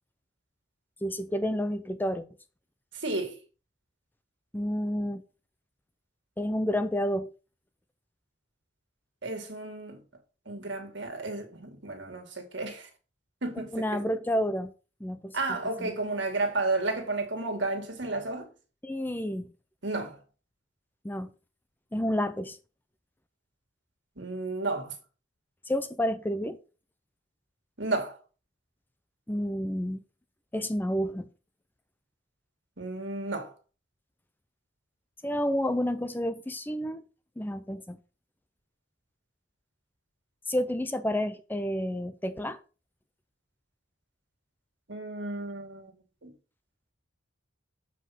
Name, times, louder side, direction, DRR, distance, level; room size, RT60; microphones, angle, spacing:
voice 1, 1.0-2.3 4.5-5.2 6.4-7.3 13.7-14.7 15.0-15.9 18.8-19.5 21.0-21.3 21.9-22.6 25.7-26.6 29.3-30.0 30.5-31.2 35.2-37.0 37.4-38.0 40.5-42.6, equal, 10° left, 0.5 m, -30 dB
voice 2, 2.9-3.4 9.2-10.0 10.5-12.9 13.4-14.0 15.3-18.5 19.8-20.2 24.2-24.9 27.8-28.2 32.8-33.5 44.9-45.9 46.2-46.3, right 2 dB, 65° right, 2.2 m, -32 dB
7.8 x 5.0 x 5.7 m
head